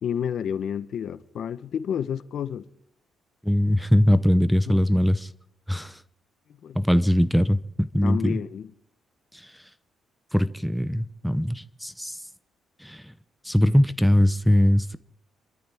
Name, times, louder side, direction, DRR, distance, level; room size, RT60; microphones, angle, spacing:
voice 1, 0.0-2.6 4.7-4.8 6.6-6.8 8.0-8.7, left 8 dB, 65° left, 1.1 m, -30 dB
voice 2, 3.4-5.3 5.7-6.0 6.7-8.4 9.3-9.5 10.3-12.2 12.8-13.1 13.4-15.0, equal, ahead, 0.8 m, -21 dB
28.0 x 13.5 x 3.6 m
cardioid pair, 90°, 0 cm